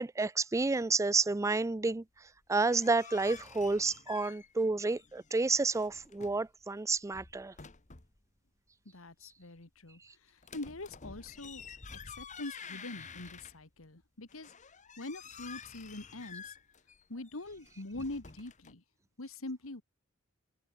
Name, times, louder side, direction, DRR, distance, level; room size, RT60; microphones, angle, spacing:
voice 1, 0.0-2.0 2.5-7.5, right 3 dB, 15° right, 0.4 m, -30 dB
sound 1, 2.4-4.7 4.9-6.5 7.0-8.2 10.4-13.8 14.3-18.7, left 6 dB, 35° left, 1.5 m, -50 dB
voice 2, 8.9-11.6 12.0-14.5 15.0-16.6 17.1-18.8 19.2-19.8, left 2 dB, 80° left, 2.0 m, -44 dB
head